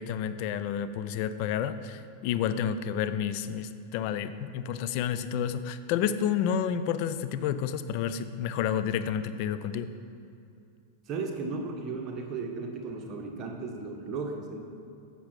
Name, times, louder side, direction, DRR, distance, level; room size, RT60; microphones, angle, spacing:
voice 1, 0.0-9.9, left 8 dB, 45° left, 12 dB, 0.4 m, -30 dB
voice 2, 11.1-14.6, right 4 dB, 30° right, 2 dB, 1.1 m, -35 dB
8.8 x 6.2 x 5.8 m, 2.6 s
figure-of-eight pair, 90°, 0 cm